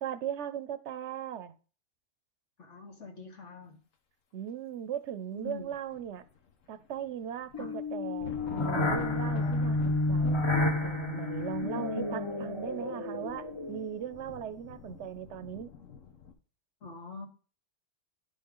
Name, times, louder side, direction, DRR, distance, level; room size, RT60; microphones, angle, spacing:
voice 1, 0.0-1.5 4.3-6.2 6.7-10.4 10.8-15.7, right 9 dB, 70° right, 0.9 m, -38 dB
voice 2, 2.6-3.8 5.3-5.7 7.6-7.8 16.8-17.3, left 4 dB, 70° left, 2.1 m, -45 dB
sound 1, 5.6-6.5 6.8-16.3, left 7 dB, 85° left, 1.4 m, -45 dB
sound 2, 7.5-13.9, left 2 dB, 25° left, 1.0 m, -30 dB
10.5 x 5.5 x 3.7 m
omnidirectional pair, 1.3 m